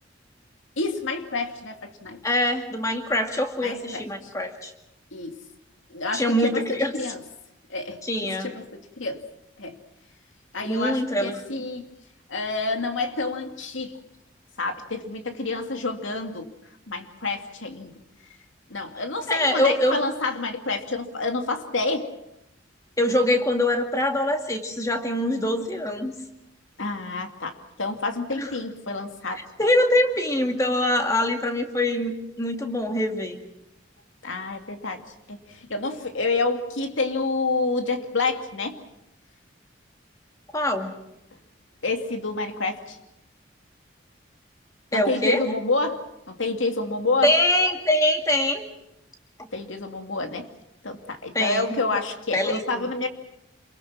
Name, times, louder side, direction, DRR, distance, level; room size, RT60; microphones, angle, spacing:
voice 1, 0.8-2.2 3.6-4.3 5.1-5.4 5.9-7.2 7.7-8.0 8.4-9.2 9.6-9.8 10.5-11.8 12.3-13.9 14.6-16.5 16.9-17.9 18.7-22.1 26.8-29.4 34.2-35.0 35.3-38.8 41.8-43.0 44.9-46.0 46.3-47.3 49.5-50.5 50.8-53.1, left 3 dB, 80° left, 5 dB, 2.4 m, -28 dB
voice 2, 2.2-4.7 6.1-6.9 8.0-8.5 10.7-11.4 19.3-20.0 23.0-26.1 28.3-28.5 29.3-33.4 40.5-40.9 44.9-45.4 47.2-48.6 51.3-51.8 52.3-52.6, left 1 dB, 15° left, 4 dB, 2.2 m, -24 dB
28.0 x 22.5 x 6.1 m, 0.85 s
head